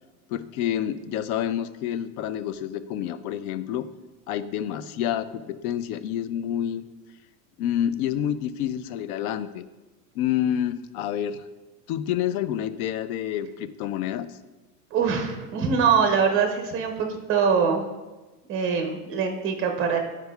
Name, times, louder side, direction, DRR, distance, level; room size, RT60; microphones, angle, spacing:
voice 1, 0.3-3.9 4.3-6.8 7.6-9.7 10.1-11.4 11.9-14.4, left 10 dB, 65° left, 13 dB, 0.5 m, -28 dB
voice 2, 14.9-17.9 18.5-20.0, right 6 dB, 25° right, 4 dB, 0.8 m, -23 dB
9.5 x 4.7 x 2.3 m, 1.1 s
supercardioid pair, 145°, 47 cm